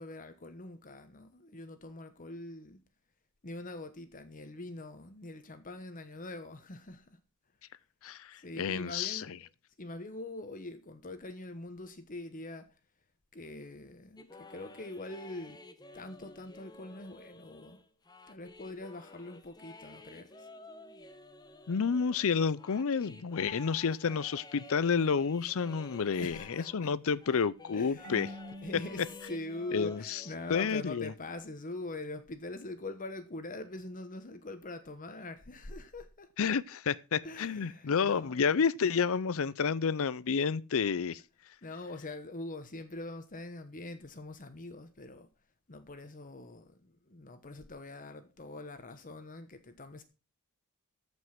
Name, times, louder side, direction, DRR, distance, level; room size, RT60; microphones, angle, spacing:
voice 1, 0.0-2.8 3.4-7.2 8.3-9.5 9.8-12.7 13.3-15.6 15.9-17.8 18.3-20.5 26.2-26.9 27.7-36.3 37.2-38.5 41.6-45.3 45.7-50.0, left 2 dB, 35° left, 1.1 m, -43 dB
voice 2, 8.0-9.4 21.7-28.3 29.7-30.2 30.5-31.1 36.4-41.2, left 6 dB, 65° left, 0.5 m, -30 dB
sound 1, 14.2-26.9 27.2-30.6, left 2 dB, 20° left, 0.9 m, -52 dB
Marimba xylophone / Wood, 28.0-30.8, equal, 80° right, 1.1 m, -48 dB
14.0 x 5.4 x 5.9 m
head